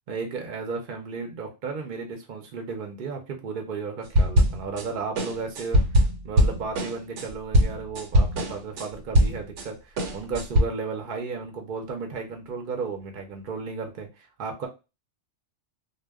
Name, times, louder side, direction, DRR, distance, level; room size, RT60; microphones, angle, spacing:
voice 1, 0.1-14.7, right 4 dB, 55° right, 3 dB, 0.6 m, -34 dB
sound 1, 4.1-4.9 5.2-9.7 10.0-10.6, equal, 85° right, 0.9 m, -21 dB
2.1 x 2.1 x 3.4 m, 0.27 s
omnidirectional pair, 1.2 m